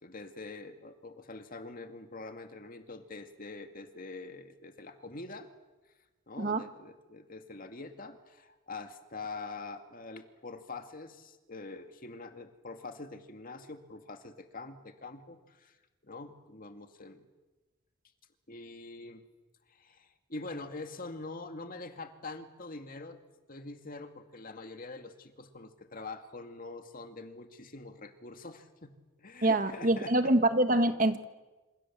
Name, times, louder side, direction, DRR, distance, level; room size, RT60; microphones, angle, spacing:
voice 1, 0.0-5.5 6.3-15.8 16.0-17.3 18.5-19.2 19.7-23.2 23.5-28.9 29.2-30.3, left 3 dB, 40° left, 7 dB, 2.2 m, -44 dB
voice 2, 29.4-31.3, right 1 dB, 40° right, 9 dB, 1.6 m, -25 dB
28.0 x 27.0 x 7.5 m, 1.2 s
head